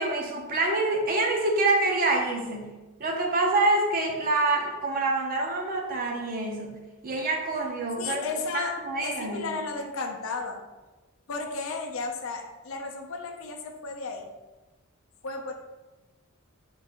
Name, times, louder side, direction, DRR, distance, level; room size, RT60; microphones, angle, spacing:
voice 1, 0.0-2.7 3.0-6.8 7.0-8.3 8.5-9.5, right 2 dB, 40° right, 1 dB, 0.6 m, -26 dB
voice 2, 8.0-8.7 9.0-10.6 11.3-14.3 15.2-15.5, left 4 dB, 65° left, 3 dB, 0.5 m, -34 dB
3.8 x 2.5 x 4.2 m, 1.2 s
head